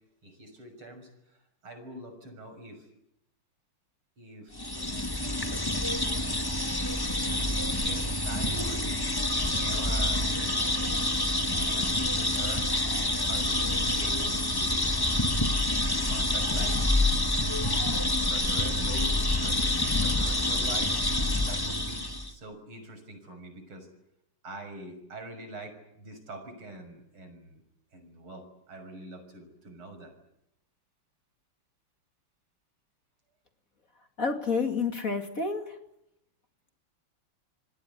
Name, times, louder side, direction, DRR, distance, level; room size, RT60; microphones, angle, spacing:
voice 1, 0.2-1.1 1.6-2.9 4.2-4.9 5.2-5.4 7.2-10.9 11.5-12.7 13.3-14.8 15.9-16.8 18.1-21.0 21.4-22.0 22.3-23.9 24.4-27.6 27.9-30.1, right 1 dB, 75° right, 7 dB, 7.0 m, -44 dB
sound 1, 4.5-22.3, left 1 dB, 10° left, 1.5 m, -27 dB
voice 2, 34.2-35.8, left 4 dB, 40° left, 6 dB, 2.7 m, -29 dB
28.0 x 20.5 x 9.7 m, 0.81 s
omnidirectional pair, 2.4 m